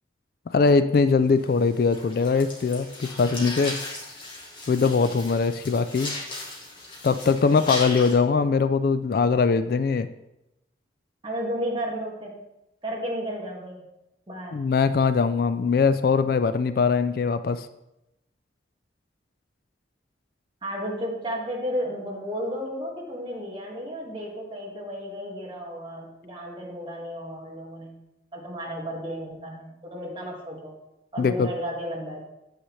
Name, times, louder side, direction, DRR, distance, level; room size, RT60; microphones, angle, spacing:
voice 1, 0.5-3.8 4.7-6.1 7.0-10.1 14.5-17.7 31.2-31.5, left 4 dB, 50° left, 12 dB, 0.3 m, -21 dB
sound 1, 1.4-8.1, left 2 dB, 25° left, 1.8 m, -37 dB
voice 2, 11.2-12.4 12.8-13.8 14.3-14.6 20.6-28.0 28.3-30.7 31.1-32.2, equal, 25° right, -2 dB, 1.8 m, -33 dB
8.8 x 8.1 x 3.2 m, 0.90 s
head